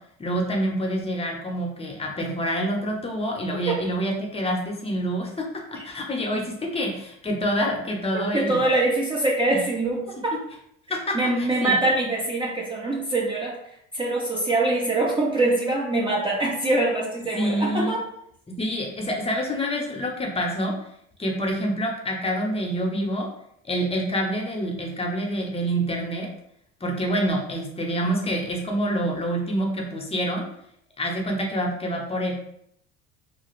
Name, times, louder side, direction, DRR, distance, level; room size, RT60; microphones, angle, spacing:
voice 1, 0.2-5.3 5.8-8.6 11.4-11.7 17.3-18.0 18.6-20.7 21.2-23.3 23.6-26.3 26.8-30.4 31.0-32.3, equal, 20° left, 0 dB, 0.7 m, -27 dB
voice 2, 8.1-10.4 11.1-13.6 13.9-18.0, right 2 dB, 15° right, -2 dB, 0.5 m, -24 dB
2.4 x 2.3 x 3.0 m, 0.72 s
supercardioid pair, 85°, 31 cm